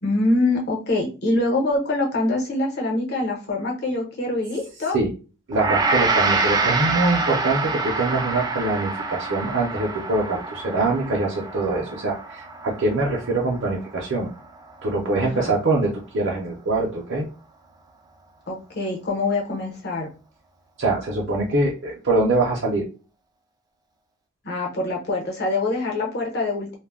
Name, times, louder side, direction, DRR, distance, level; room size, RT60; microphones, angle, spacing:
voice 1, 0.0-5.0 15.2-15.5 18.5-20.1 24.4-26.8, left 2 dB, 55° left, 0 dB, 0.9 m, -24 dB
Gong, 5.5-14.9, right 3 dB, 20° right, 0.4 m, -26 dB
voice 2, 5.5-14.3 14.8-17.3 20.8-22.9, right 2 dB, 65° right, -3 dB, 0.6 m, -23 dB
2.3 x 2.1 x 3.5 m, 0.33 s
head